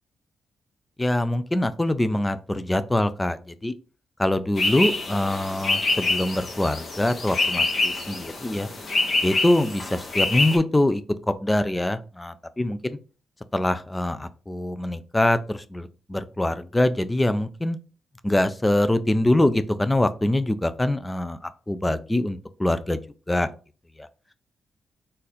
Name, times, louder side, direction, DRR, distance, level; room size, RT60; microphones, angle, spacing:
voice 1, 1.0-3.7 4.2-8.7 9.2-12.8 13.5-17.8 18.2-21.4 21.7-23.0 23.3-23.5 24.0-24.1, left 1 dB, 15° left, 11 dB, 0.4 m, -24 dB
sound 1, 4.6-10.6, left 3 dB, 45° left, 1.1 m, -26 dB
4.1 x 2.5 x 4.1 m, 0.35 s
cardioid pair, 100°, 0 cm